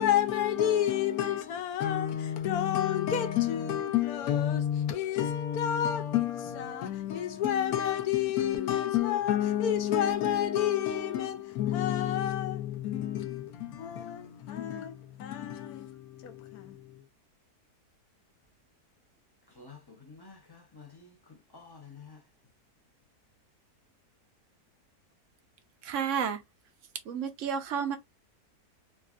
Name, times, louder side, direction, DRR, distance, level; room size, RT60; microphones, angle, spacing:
voice 1, 0.0-17.0, left 10 dB, 75° left, 1.1 m, -29 dB
voice 2, 19.6-21.2 21.5-22.2, left 4 dB, 30° left, 0.4 m, -50 dB
voice 3, 25.8-26.4 27.1-28.0, right 7 dB, 65° right, 0.8 m, -31 dB
3.5 x 2.4 x 2.3 m
omnidirectional pair, 1.7 m